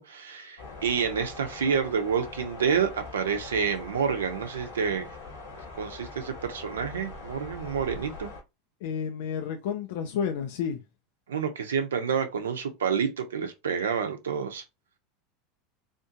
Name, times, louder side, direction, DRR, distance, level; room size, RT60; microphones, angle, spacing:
voice 1, 0.1-5.1 5.8-8.3 11.3-14.6, right 6 dB, 80° right, 0.6 m, -28 dB
sound 1, 0.6-8.4, left 3 dB, 85° left, 1.4 m, -42 dB
voice 2, 8.8-10.8, left 7 dB, 65° left, 0.5 m, -31 dB
3.5 x 2.6 x 2.7 m
hypercardioid pair, 85°, 0 cm